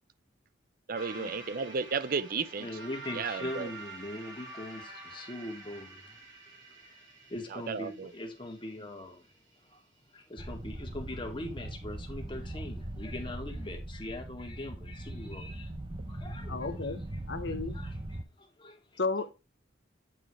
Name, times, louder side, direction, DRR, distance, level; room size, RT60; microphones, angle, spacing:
voice 1, 0.9-2.7 3.1-3.7 7.5-8.1, right 5 dB, 50° right, 0.5 m, -33 dB
sound 1, 1.0-9.4, right 3 dB, 90° right, 2.9 m, -47 dB
voice 2, 2.6-9.8 10.1-15.7 16.0-17.0 17.4-19.0, left 1 dB, 25° left, 1.8 m, -42 dB
sound 2, 10.4-18.2, right 1 dB, 25° right, 0.9 m, -40 dB
voice 3, 16.5-17.0 17.3-17.8 19.0-19.3, left 3 dB, 65° left, 0.9 m, -33 dB
9.1 x 3.8 x 4.8 m
head